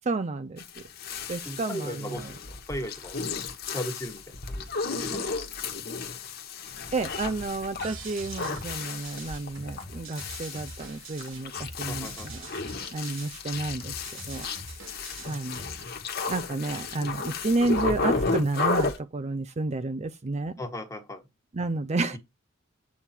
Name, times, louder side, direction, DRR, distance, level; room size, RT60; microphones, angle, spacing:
voice 1, 0.0-0.8 1.3-2.3 6.9-14.5 15.2-15.7 16.3-20.5 21.5-22.2, right 2 dB, 35° right, 0.5 m, -31 dB
sound 1, 0.6-19.0, left 4 dB, 50° left, 1.4 m, -33 dB
voice 2, 1.4-3.2 3.7-4.6 5.0-5.4 11.9-12.3 20.6-21.2, left 1 dB, 15° left, 1.5 m, -37 dB
sound 2, 7.8-15.8, right 2 dB, 85° right, 3.3 m, -43 dB
8.3 x 3.6 x 4.4 m
head